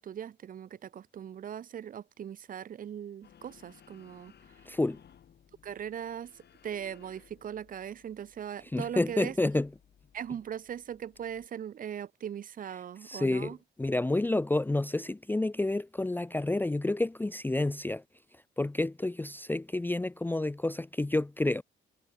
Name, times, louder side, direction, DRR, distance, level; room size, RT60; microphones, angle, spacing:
voice 1, 0.0-4.3 5.6-9.3 10.1-13.6, right 9 dB, 45° right, 0.6 m, -40 dB
sound 1, 3.2-11.5, left 8 dB, 55° left, 3.8 m, -60 dB
voice 2, 4.7-5.0 8.7-9.7 13.0-18.0 18.6-21.6, left 2 dB, 10° left, 0.6 m, -29 dB
cardioid pair, 90°, 20 cm